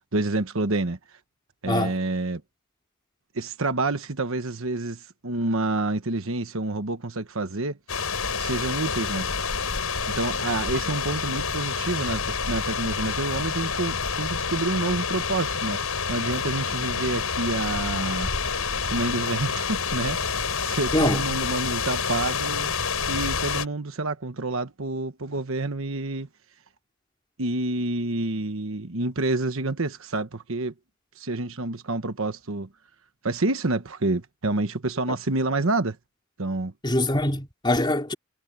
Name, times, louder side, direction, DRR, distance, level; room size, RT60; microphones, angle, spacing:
voice 1, 0.1-1.0 1.6-2.4 3.3-8.0 8.4-9.3 10.1-15.8 16.1-18.3 18.9-20.2 20.6-22.7 23.1-26.3 27.4-30.7 31.2-32.7 33.2-36.0 36.4-36.7, right 2 dB, 65° right, 1.2 m, -28 dB
sound 1, 7.9-23.7, left 5 dB, 80° left, 6.2 m, -28 dB
voice 2, 20.9-21.3 36.8-38.1, left 1 dB, 20° left, 3.7 m, -23 dB
head